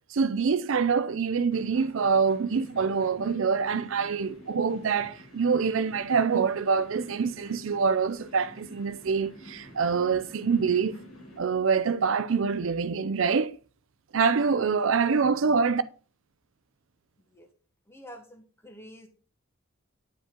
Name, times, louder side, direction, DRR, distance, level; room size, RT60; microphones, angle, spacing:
voice 1, 0.1-11.0 11.4-13.6 14.1-15.8, right 5 dB, 65° right, 0.5 m, -25 dB
sound 1, 1.5-11.4, equal, 75° left, 2.9 m, -49 dB
voice 2, 14.2-15.2 17.3-17.5 17.9-19.1, equal, 10° left, 1.2 m, -49 dB
10.5 x 5.2 x 3.8 m
head